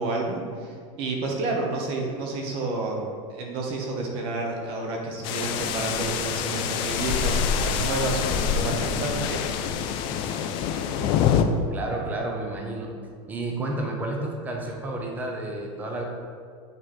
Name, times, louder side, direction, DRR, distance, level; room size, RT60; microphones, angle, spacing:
voice 1, 0.0-3.0 3.3-9.4, right 2 dB, 35° right, 0 dB, 1.2 m, -30 dB
sound 1, 5.2-11.4, left 8 dB, 30° left, 0.4 m, -26 dB
voice 2, 10.9-11.4 11.7-12.9 13.3-16.0, right 2 dB, 10° right, 1 dB, 0.7 m, -31 dB
8.6 x 4.7 x 4.4 m, 2.1 s
supercardioid pair, 175°, 16 cm